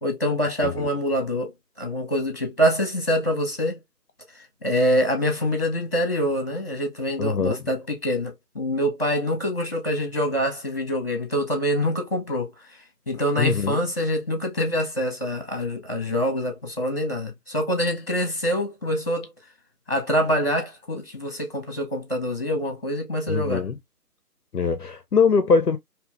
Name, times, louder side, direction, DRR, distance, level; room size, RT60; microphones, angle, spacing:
voice 1, 0.0-1.5 1.8-3.8 4.6-12.5 13.1-19.3 19.9-23.7, equal, 35° left, 1.2 m, -25 dB
voice 2, 7.2-7.6 13.4-13.8 23.3-23.8 24.5-25.8, left 5 dB, 70° left, 0.6 m, -22 dB
3.5 x 2.7 x 2.2 m
figure-of-eight pair, 180°, 49 cm